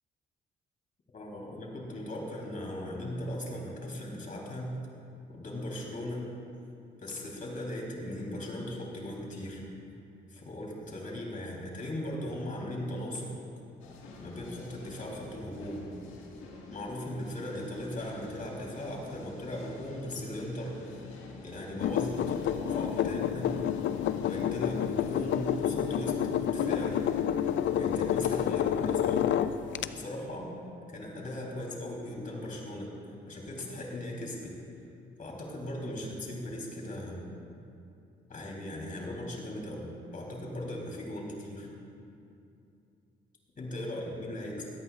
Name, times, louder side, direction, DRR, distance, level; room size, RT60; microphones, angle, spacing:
voice 1, 1.1-4.7 5.3-6.3 7.0-9.6 10.3-13.3 14.2-15.9 16.7-21.0 21.4-23.5 24.2-27.0 27.7-29.2 29.9-30.5 30.9-32.9 33.3-34.5 35.2-37.2 38.3-41.7 43.6-44.6, left 1 dB, 40° left, -2 dB, 3.5 m, -38 dB
sound 1, 13.8-28.5, left 2 dB, 90° left, 1.7 m, -49 dB
sound 2, 21.8-29.9, left 9 dB, 70° left, 0.5 m, -29 dB
21.0 x 14.0 x 2.5 m, 2.6 s
cardioid pair, 90°, 20 cm